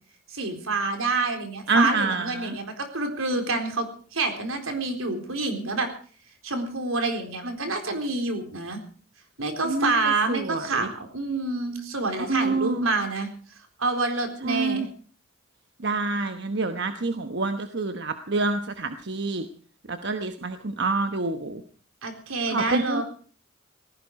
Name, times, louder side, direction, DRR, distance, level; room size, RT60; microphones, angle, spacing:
voice 1, 0.3-3.9 4.1-5.9 6.4-8.8 9.4-13.3 13.8-14.9 22.0-23.0, right 3 dB, 85° right, 5 dB, 4.1 m, -27 dB
voice 2, 1.7-2.5 9.6-10.0 10.3-10.9 12.3-12.9 14.4-14.9 15.8-19.4 19.9-21.6 22.5-23.0, right 3 dB, 55° right, 8 dB, 1.1 m, -27 dB
18.5 x 15.5 x 4.8 m, 0.42 s
head